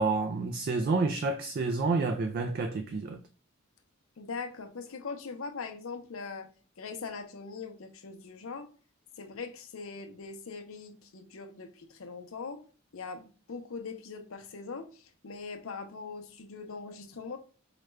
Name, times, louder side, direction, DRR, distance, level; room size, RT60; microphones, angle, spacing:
voice 1, 0.0-3.2, right 3 dB, 45° right, 0.3 m, -29 dB
voice 2, 4.2-6.5 6.8-8.7 9.2-12.6 12.9-17.4, left 4 dB, 80° left, 0.6 m, -41 dB
4.9 x 2.2 x 3.0 m
head